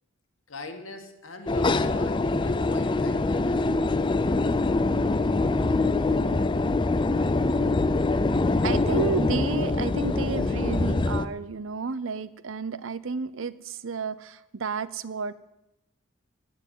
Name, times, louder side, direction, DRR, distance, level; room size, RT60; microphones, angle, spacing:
voice 1, 0.5-3.9, left 2 dB, 75° left, 5 dB, 1.8 m, -42 dB
sound 1, 1.5-11.3, left 2 dB, 25° left, 0.4 m, -24 dB
voice 2, 8.6-15.3, right 4 dB, 65° right, 16 dB, 0.6 m, -31 dB
9.9 x 9.6 x 8.3 m, 0.92 s
head